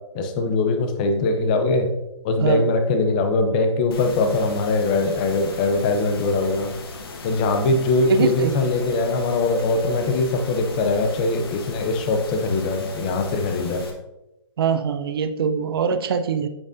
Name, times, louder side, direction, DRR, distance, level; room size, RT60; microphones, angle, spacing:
voice 1, 0.1-1.9 2.2-6.7 7.2-13.8, left 3 dB, 15° left, 6 dB, 0.5 m, -22 dB
sound 1, 3.9-13.9, left 3 dB, 50° left, 1.3 m, -38 dB
voice 2, 8.1-8.6 14.6-16.5, right 6 dB, 50° right, 8 dB, 0.5 m, -22 dB
8.7 x 6.5 x 2.6 m, 0.96 s
hypercardioid pair, 170°, 16 cm